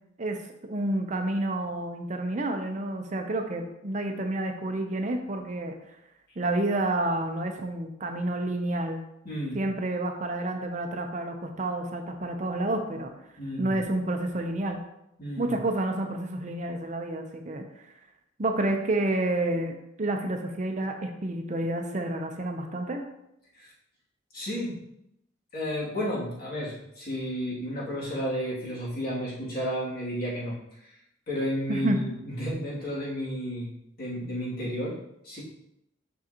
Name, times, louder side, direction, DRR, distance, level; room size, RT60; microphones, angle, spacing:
voice 1, 0.6-5.8 6.4-9.0 9.5-13.1 13.6-14.8 15.4-17.9 18.4-23.0 31.7-32.0, right 1 dB, 40° right, 4 dB, 0.6 m, -29 dB
voice 2, 9.2-9.6 13.4-13.8 15.2-15.6 23.5-23.7 24.3-24.8 25.5-31.0 31.3-33.7 34.0-35.0 35.2-35.4, equal, 50° left, -6 dB, 2.4 m, -32 dB
6.2 x 6.2 x 2.9 m, 0.81 s
head